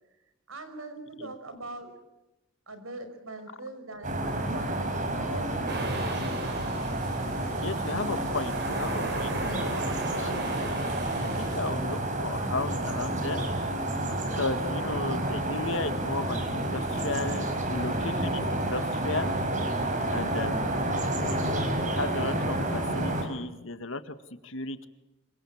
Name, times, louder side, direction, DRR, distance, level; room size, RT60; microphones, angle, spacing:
voice 1, 0.5-1.9 2.7-5.6, right 2 dB, 80° right, 10 dB, 5.7 m, -42 dB
sound 1, 4.0-23.2, right 1 dB, 35° right, 4.9 m, -30 dB
sound 2, 5.7-11.6, right 2 dB, 50° right, 6.5 m, -37 dB
voice 2, 7.6-9.8 10.1-10.8 11.2-13.5 14.3-19.3 20.1-20.8 21.3-24.1 24.4-24.9, left 3 dB, 70° left, 10 dB, 1.9 m, -35 dB
27.0 x 25.0 x 7.4 m, 0.97 s
head